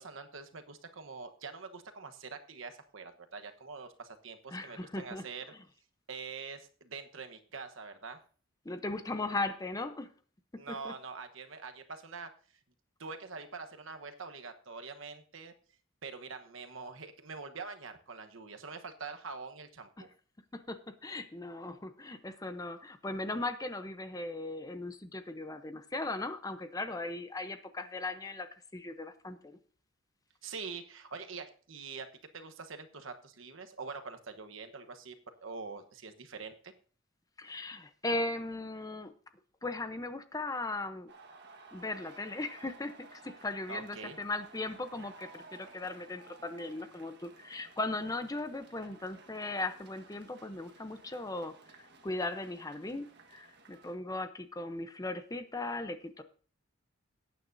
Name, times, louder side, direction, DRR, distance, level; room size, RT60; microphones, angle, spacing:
voice 1, 0.0-5.4 6.1-8.2 10.6-12.3 13.0-15.5 16.0-20.1 30.4-35.1 35.4-36.7 43.7-44.2, right 4 dB, 75° right, 7 dB, 1.1 m, -44 dB
voice 2, 4.5-5.2 8.6-10.1 10.8-10.9 20.0-20.1 20.5-29.6 37.4-39.1 39.6-41.1 41.7-56.2, left 2 dB, 15° left, 10 dB, 0.7 m, -38 dB
sound 1, 41.1-54.0, right 3 dB, 55° right, 1.5 m, -56 dB
17.5 x 9.3 x 2.6 m, 0.41 s
head